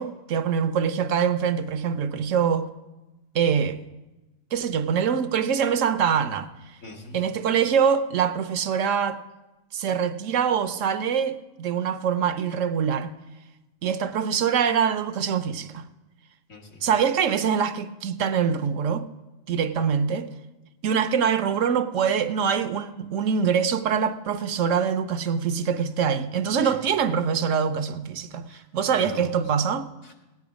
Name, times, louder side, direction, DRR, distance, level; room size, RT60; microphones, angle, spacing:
voice 1, 0.0-2.7 3.3-3.8 4.5-6.8 7.1-9.2 9.7-13.1 13.8-15.9 16.8-19.1 19.5-20.3 20.8-29.9, right 7 dB, 70° right, 1.0 m, -24 dB
voice 2, 6.8-7.2 16.5-16.8 26.6-26.8 28.5-29.3 30.0-30.1, left 2 dB, 80° left, 2.2 m, -41 dB
15.5 x 9.6 x 5.0 m
omnidirectional pair, 1.4 m